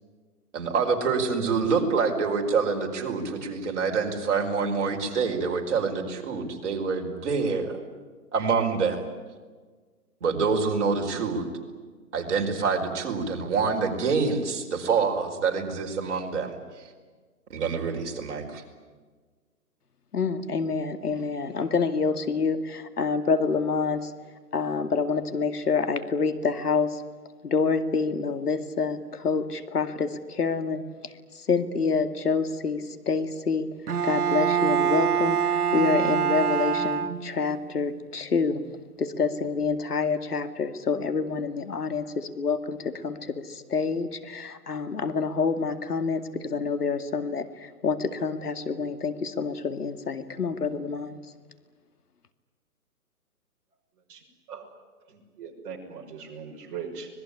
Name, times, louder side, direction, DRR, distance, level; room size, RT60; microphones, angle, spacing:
voice 1, 0.5-7.8 8.3-9.1 10.2-11.5 12.1-16.6 17.5-18.6, right 5 dB, 50° right, 2 dB, 4.9 m, -26 dB
voice 2, 20.1-24.1 24.5-27.0 27.4-33.7 34.0-38.6 39.0-51.2, left 5 dB, 80° left, 10 dB, 2.4 m, -27 dB
Bowed string instrument, 33.9-37.6, right 8 dB, 75° right, 1.5 m, -25 dB
voice 3, 55.1-57.1, right 6 dB, 35° right, -1 dB, 6.2 m, -39 dB
25.5 x 20.5 x 10.0 m, 1.4 s
hypercardioid pair, 150°, 45 cm